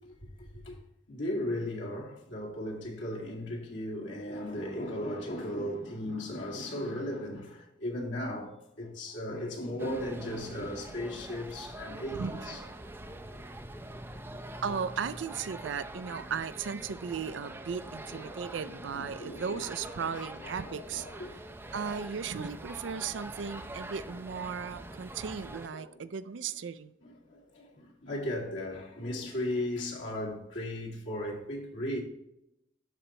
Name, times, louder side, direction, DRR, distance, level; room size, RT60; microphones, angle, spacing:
voice 1, 0.4-0.8 1.1-12.6 13.0-13.4 17.8-19.7 20.0-21.6 24.9-25.0 25.7-26.0 27.0-32.0, left 1 dB, 70° left, 2.0 m, -37 dB
sound 1, 9.8-25.7, right 1 dB, 10° right, 0.4 m, -44 dB
voice 2, 12.2-12.9 14.6-21.1 21.7-26.9, right 6 dB, 70° right, 0.4 m, -36 dB
12.0 x 4.3 x 2.9 m
head